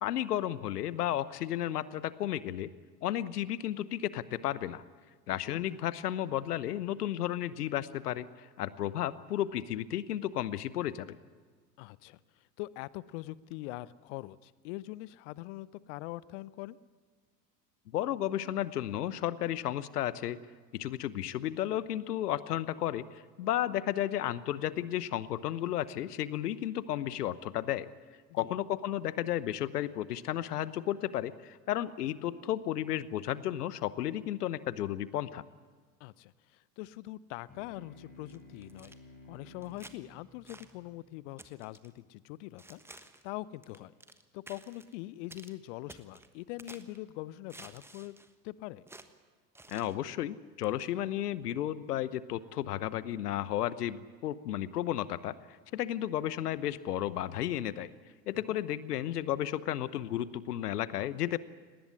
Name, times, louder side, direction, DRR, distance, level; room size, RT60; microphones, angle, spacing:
voice 1, 0.0-2.7 3.0-4.8 5.3-11.2 17.9-20.4 20.7-27.9 28.3-35.4 49.7-55.3 55.7-57.9 58.3-61.4, left 12 dB, 65° left, 17 dB, 1.0 m, -33 dB
voice 2, 11.8-16.8 28.3-28.5 36.0-38.9 39.3-43.9 44.3-48.2 48.4-48.9 58.5-58.6, left 18 dB, 45° left, 20 dB, 0.8 m, -43 dB
sound 1, 37.5-42.3, left 2 dB, 15° left, 5.8 m, -56 dB
sound 2, 38.3-39.0 39.6-40.0 40.5-40.7 41.4-41.9 42.6-43.3 43.6-44.2 44.5-44.9 45.3-45.5 45.9-47.0 47.5-48.3 48.9-49.1 49.6-50.0 50.6-50.9, right 2 dB, 5° right, 1.2 m, -52 dB
19.0 x 18.5 x 9.7 m, 1.5 s
figure-of-eight pair, 80°, 50 cm